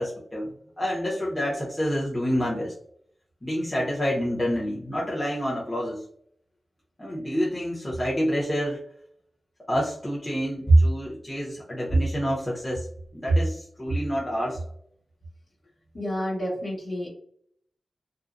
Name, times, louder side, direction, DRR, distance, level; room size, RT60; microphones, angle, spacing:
voice 1, 0.0-2.7 3.4-6.1 7.0-8.8 9.7-12.9 13.1-14.6, right 1 dB, 20° left, -6 dB, 0.8 m, -26 dB
voice 2, 15.9-17.1, equal, 65° left, -7 dB, 1.2 m, -30 dB
2.6 x 2.1 x 2.5 m, 0.64 s
cardioid pair, 60°, 0 cm